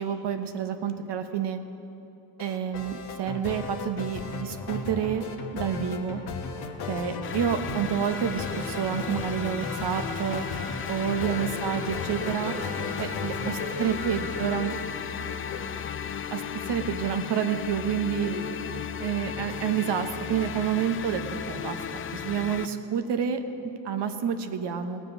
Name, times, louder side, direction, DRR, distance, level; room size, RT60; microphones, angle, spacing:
voice 1, 0.0-1.6 2.4-5.2 5.5-6.2 6.9-10.5 10.9-12.5 13.0-13.5 13.8-14.7 16.3-18.3 19.0-21.2 21.5-21.8 22.1-25.0, right 8 dB, 55° right, 8 dB, 1.1 m, -29 dB
sound 1, 2.4-13.7, left 4 dB, 50° left, 1.4 m, -36 dB
sound 2, 7.2-22.7, left 7 dB, 25° left, 0.4 m, -35 dB
sound 3, 8.0-14.8, right 3 dB, 85° right, 2.1 m, -45 dB
voice 2, 11.2-11.8 12.2-13.0 13.4-15.9 16.3-16.6 18.2-18.5 19.3-19.6, left 4 dB, 65° left, 1 dB, 2.1 m, -41 dB
17.5 x 7.5 x 5.5 m, 2.9 s
supercardioid pair, 75°, 49 cm